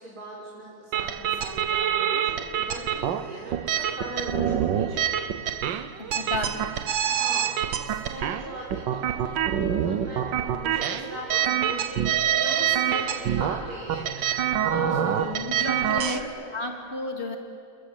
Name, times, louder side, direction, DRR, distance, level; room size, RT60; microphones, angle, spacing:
voice 1, 0.0-6.6 7.0-16.6, right 1 dB, 55° right, -5 dB, 5.0 m, -40 dB
sound 1, 0.9-16.2, right 9 dB, 85° right, 1.6 m, -26 dB
voice 2, 4.3-4.6 6.0-6.5 14.7-16.2 16.5-17.4, left 2 dB, 35° left, 2 dB, 2.9 m, -32 dB
29.0 x 19.5 x 9.7 m, 2.5 s
omnidirectional pair, 1.9 m